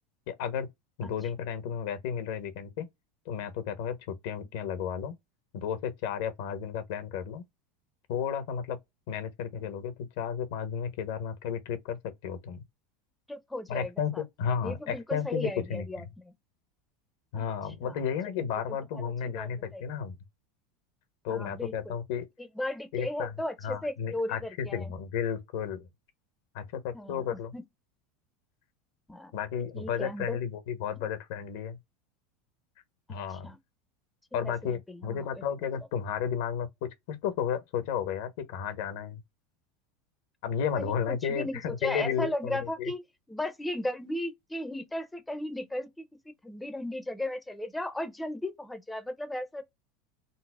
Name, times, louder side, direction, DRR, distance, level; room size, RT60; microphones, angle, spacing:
voice 1, 0.3-0.7 1.0-2.9 3.3-5.1 5.5-7.4 8.1-8.8 9.1-12.6 13.7-15.8 17.3-20.2 21.2-22.2 22.9-23.3 23.6-25.9 26.5-27.5 29.3-31.8 33.1-33.5 34.3-39.2 40.4-42.9, left 7 dB, 70° left, 0.9 m, -33 dB
voice 2, 13.3-14.2 14.6-16.3 17.4-17.5 17.8-18.4 18.7-19.8 21.3-22.0 22.4-24.9 26.9-27.6 29.1-29.3 29.7-30.4 33.3-33.6 34.4-35.3 40.7-43.0 43.3-49.6, left 1 dB, 5° left, 0.6 m, -36 dB
4.0 x 2.0 x 2.3 m
supercardioid pair, 130°, 0 cm